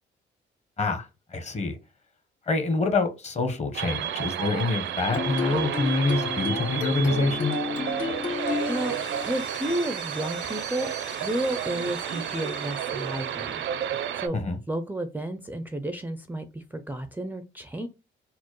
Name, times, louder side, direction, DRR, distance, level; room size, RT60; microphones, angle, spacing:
voice 1, 0.8-1.8 2.5-7.6 14.3-14.6, left 3 dB, 35° left, 0.9 m, -26 dB
sound 1, 3.7-14.3, right 9 dB, 70° right, 0.5 m, -31 dB
sound 2, 5.0-10.6, left 5 dB, 80° left, 1.8 m, -32 dB
Power tool, 7.8-13.9, left 3 dB, 60° left, 1.8 m, -45 dB
voice 2, 9.2-10.9 11.2-13.6 14.1-14.4 14.7-17.9, right 1 dB, 10° right, 0.4 m, -31 dB
4.3 x 2.0 x 3.0 m
cardioid pair, 90°, 20 cm